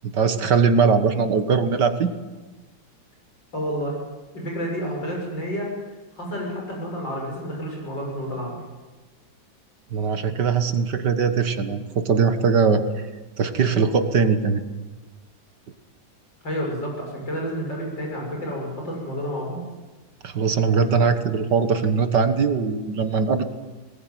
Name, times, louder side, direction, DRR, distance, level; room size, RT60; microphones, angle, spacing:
voice 1, 0.0-2.1 9.9-12.8 13.4-14.6 20.2-23.4, right 5 dB, 60° right, 8 dB, 2.1 m, -21 dB
voice 2, 3.5-4.0 4.3-5.7 6.2-8.5 16.4-19.6, equal, 65° left, -1 dB, 7.4 m, -30 dB
21.0 x 20.0 x 9.4 m, 1.2 s
omnidirectional pair, 2.1 m